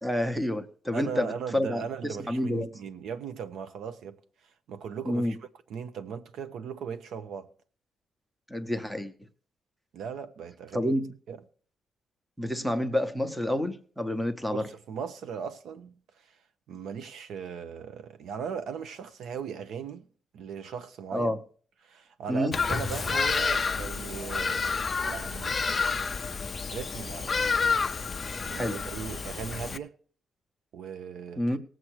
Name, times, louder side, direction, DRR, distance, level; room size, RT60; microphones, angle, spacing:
voice 1, 0.0-2.7 5.1-5.3 8.5-9.1 10.7-11.1 12.4-14.6 21.1-21.4 22.3-22.5 28.5-28.8 31.4-31.6, left 1 dB, 5° right, 0.8 m, -29 dB
voice 2, 0.9-4.2 4.4-7.5 9.9-10.9 11.3-11.4 14.5-16.4 16.7-20.1 20.3-21.3 21.8-25.6 26.7-27.4 28.1-30.0 30.7-31.6, right 7 dB, 85° right, 0.9 m, -38 dB
Bird vocalization bird call bird song, 22.5-29.8, left 5 dB, 25° left, 0.5 m, -29 dB
18.5 x 7.7 x 4.6 m
wide cardioid pair, 180°, 0 cm